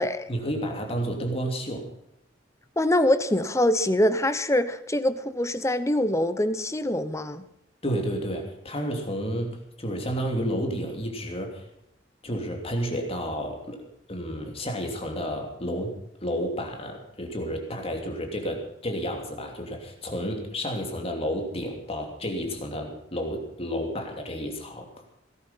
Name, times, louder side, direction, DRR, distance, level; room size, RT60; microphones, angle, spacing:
voice 1, 0.3-1.9 7.8-11.7 12.2-13.8 14.1-24.9, equal, 30° left, 3 dB, 2.9 m, -31 dB
voice 2, 2.8-7.4, left 1 dB, 15° left, 12 dB, 0.9 m, -24 dB
18.0 x 11.5 x 5.7 m, 0.79 s
head